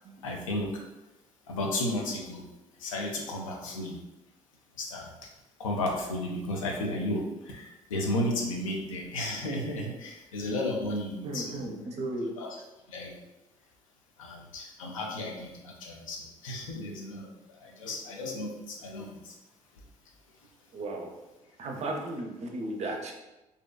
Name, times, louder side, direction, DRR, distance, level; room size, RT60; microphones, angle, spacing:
voice 1, 0.2-0.7 1.5-2.5 2.8-4.0 4.8-5.1 5.6-11.7 12.4-12.6 12.9-13.1 14.2-17.3 17.6-19.2, left 1 dB, 80° left, 0 dB, 0.4 m, -33 dB
voice 2, 11.2-12.3 20.7-21.1 21.6-23.1, right 2 dB, 40° right, 2 dB, 0.5 m, -35 dB
2.5 x 2.1 x 2.3 m, 1.0 s
figure-of-eight pair, 50°, 17 cm